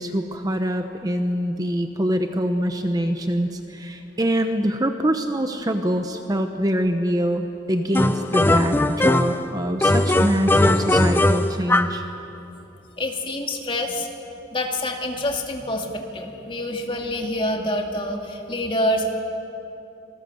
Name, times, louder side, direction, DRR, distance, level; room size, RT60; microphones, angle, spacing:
voice 1, 0.0-12.0, equal, 20° right, 6 dB, 0.9 m, -24 dB
sound 1, 7.9-9.4 9.8-12.0, left 1 dB, 10° left, 0.7 m, -19 dB
voice 2, 13.0-14.1 14.5-19.1, left 1 dB, 30° left, 2 dB, 2.3 m, -26 dB
26.5 x 19.5 x 7.9 m, 2.9 s
head